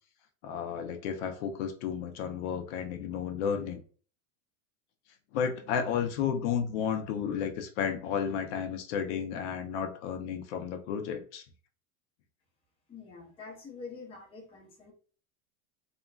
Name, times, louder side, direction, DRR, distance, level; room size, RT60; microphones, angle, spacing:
voice 1, 0.4-3.8 5.3-11.4, left 7 dB, 60° left, 6 dB, 0.6 m, -32 dB
voice 2, 12.9-14.9, left 4 dB, 15° left, -1 dB, 0.5 m, -46 dB
2.8 x 2.5 x 2.2 m, 0.42 s
supercardioid pair, 145°, 39 cm